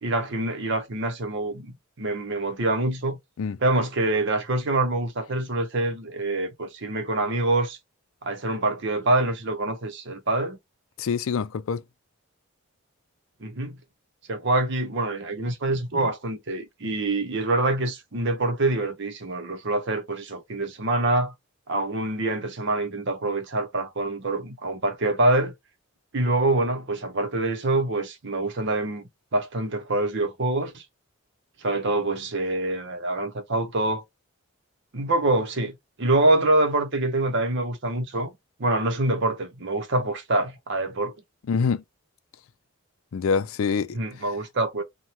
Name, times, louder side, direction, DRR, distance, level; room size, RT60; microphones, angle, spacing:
voice 1, 0.0-3.2 3.6-7.8 8.2-10.6 13.4-13.7 14.3-21.3 21.7-25.5 26.1-29.0 29.3-30.8 31.6-34.0 34.9-35.7 36.0-38.3 38.6-41.1 43.9-44.8, right 2 dB, 55° right, 0.7 m, -25 dB
voice 2, 11.0-11.8 41.5-41.8 43.1-44.0, left 5 dB, 70° left, 0.4 m, -25 dB
2.8 x 2.2 x 3.1 m
head